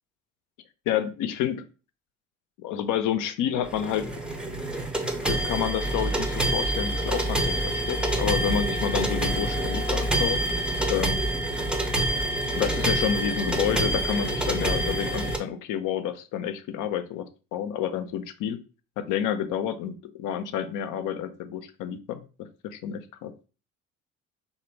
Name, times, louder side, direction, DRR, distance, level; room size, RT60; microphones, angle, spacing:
voice 1, 0.9-1.6 2.6-4.1 5.2-10.4 10.9-11.3 12.6-17.3 17.5-18.6 19.0-22.3 22.6-23.3, left 9 dB, 60° left, 10 dB, 0.5 m, -29 dB
sound 1, 3.6-15.4, right 1 dB, 5° right, 0.6 m, -27 dB
3.0 x 2.2 x 3.3 m, 0.35 s
hypercardioid pair, 55°, 36 cm